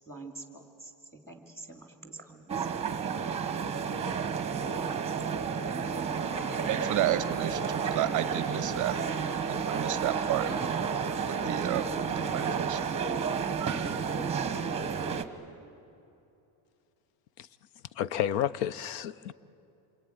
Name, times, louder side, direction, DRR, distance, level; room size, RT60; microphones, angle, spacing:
voice 1, 0.1-2.7 4.5-4.6 4.9-5.0, right 3 dB, 5° left, 3 dB, 2.7 m, -47 dB
sound 1, 2.5-15.2, right 6 dB, 10° right, 1.0 m, -31 dB
sound 2, 5.4-15.2, left 1 dB, 60° left, 4.1 m, -54 dB
sound 3, 5.5-12.4, left 2 dB, 40° left, 6.9 m, -45 dB
voice 2, 6.7-9.0 9.5-10.5 11.3-11.9 12.3-12.8 13.6-14.0, right 14 dB, 40° right, 13 dB, 0.6 m, -31 dB
voice 3, 18.0-19.3, left 10 dB, 80° left, 18 dB, 0.8 m, -31 dB
27.5 x 22.5 x 9.5 m, 2.7 s
cardioid pair, 165°, 50 cm